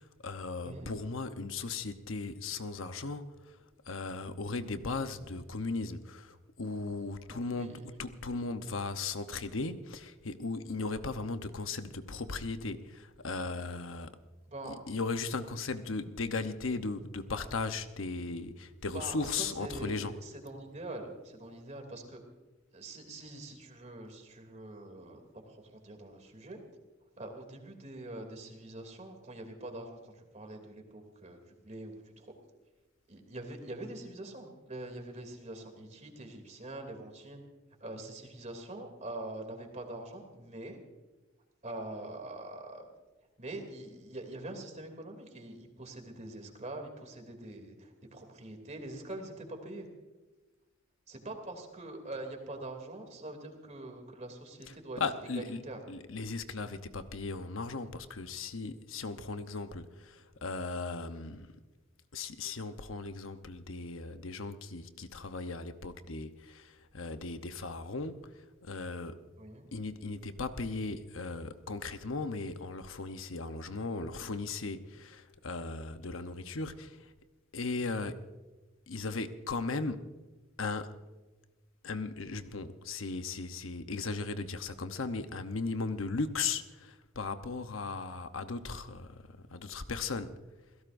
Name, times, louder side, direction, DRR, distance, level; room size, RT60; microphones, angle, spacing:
voice 1, 0.0-3.6 3.9-14.1 14.7-20.1 55.0-55.6 55.9-61.5 62.1-69.2 69.7-77.1 77.5-78.3 78.9-80.1 80.6-81.0 81.8-90.4, left 3 dB, 75° left, 1.0 m, -37 dB
voice 2, 7.3-7.8 14.5-14.9 18.9-22.2 22.7-25.2 25.5-26.6 27.2-32.3 33.1-37.4 37.8-40.8 41.6-42.8 43.4-49.9 51.1-55.0 55.3-55.8 69.4-69.7, right 2 dB, 35° right, 2.9 m, -44 dB
28.0 x 17.0 x 2.6 m
head